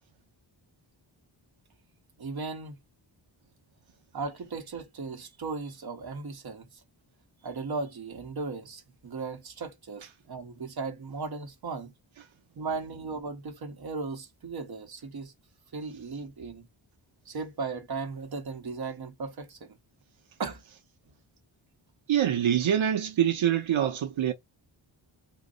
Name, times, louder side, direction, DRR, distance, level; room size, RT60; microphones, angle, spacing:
voice 1, 2.2-2.8 4.1-6.7 7.4-11.9 12.6-15.3 15.7-16.7 17.3-19.8 20.4-20.6, right 4 dB, 55° right, 1.0 m, -36 dB
voice 2, 22.1-24.3, right 10 dB, 80° right, 0.8 m, -25 dB
3.9 x 2.0 x 3.8 m
wide cardioid pair, 140°, 46 cm